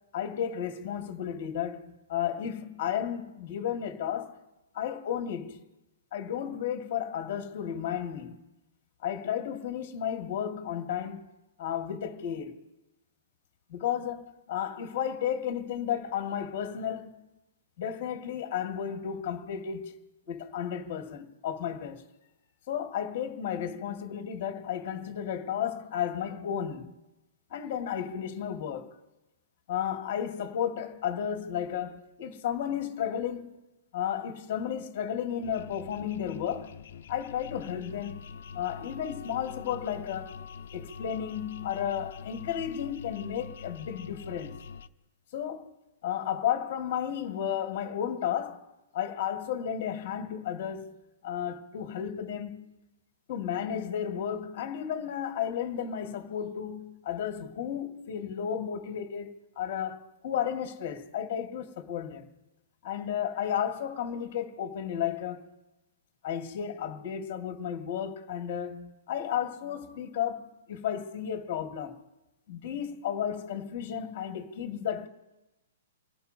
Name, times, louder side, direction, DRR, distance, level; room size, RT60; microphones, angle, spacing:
voice 1, 0.1-4.4 4.7-5.6 6.1-8.4 9.0-11.3 11.6-12.6 13.7-17.2 17.8-20.0 20.3-22.0 22.7-26.9 27.5-28.9 29.7-33.5 33.9-36.7 37.1-38.3 38.5-40.4 40.7-44.6 45.3-45.7 46.0-48.7 48.9-51.0 51.2-52.8 53.3-62.3 62.8-65.4 66.2-72.0 72.5-75.1, left 9 dB, 30° left, 1.9 m, -33 dB
sound 1, 35.4-44.9, left 7 dB, 50° left, 0.8 m, -44 dB
28.5 x 17.5 x 2.7 m
hypercardioid pair, 175°, 0 cm